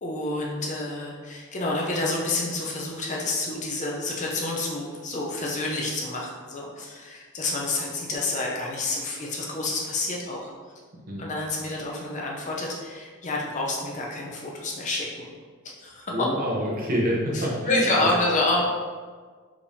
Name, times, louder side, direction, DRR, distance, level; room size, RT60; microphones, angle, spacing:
voice 1, 0.0-10.5 11.2-15.3 15.8-16.3 17.3-18.6, left 2 dB, 35° left, -2 dB, 0.6 m, -28 dB
voice 2, 16.1-18.1, equal, 40° right, -3 dB, 0.8 m, -27 dB
4.9 x 3.4 x 2.7 m, 1.5 s
head